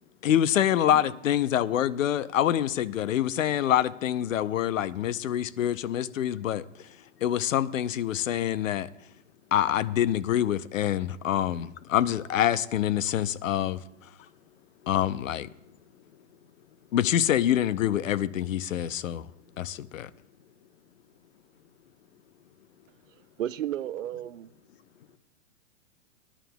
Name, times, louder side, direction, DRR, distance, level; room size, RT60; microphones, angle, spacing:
voice 1, 0.2-6.6 7.2-8.9 9.5-13.8 14.9-15.5 16.9-19.3 19.6-20.1, left 11 dB, 85° left, 0.7 m, -26 dB
voice 2, 14.2-14.7 15.6-16.9 19.5-19.6 22.4-22.5, left 10 dB, 55° left, 1.1 m, -53 dB
voice 3, 23.1-24.5, right 11 dB, 80° right, 0.7 m, -33 dB
20.5 x 11.5 x 2.3 m
hypercardioid pair, 175°, 38 cm